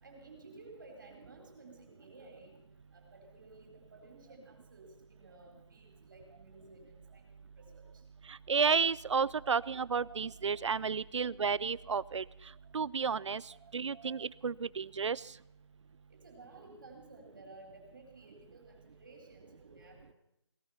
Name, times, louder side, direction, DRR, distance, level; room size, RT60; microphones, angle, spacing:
voice 1, 0.0-2.6 2.9-7.3 7.6-7.9 16.1-20.1, right 2 dB, 45° right, 3 dB, 4.3 m, -55 dB
voice 2, 8.3-12.2 12.7-13.4 13.7-15.2, right 5 dB, 80° right, 22 dB, 0.5 m, -32 dB
17.5 x 14.5 x 5.8 m, 0.80 s
hypercardioid pair, 180°, 15 cm